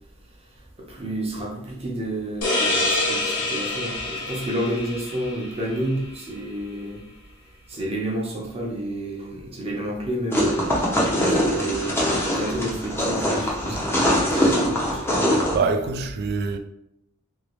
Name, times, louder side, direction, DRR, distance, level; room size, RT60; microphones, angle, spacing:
voice 1, 0.9-7.0 7.7-10.9 11.3-12.0 12.4-13.9 14.2-15.0, right 1 dB, 25° right, 0.8 m, -30 dB
sound 1, 2.4-5.9, left 2 dB, 75° left, 1.0 m, -26 dB
sound 2, 10.3-15.6, equal, 10° left, 0.6 m, -22 dB
voice 2, 15.5-16.6, right 4 dB, 45° right, 0.3 m, -25 dB
2.9 x 2.8 x 3.1 m
head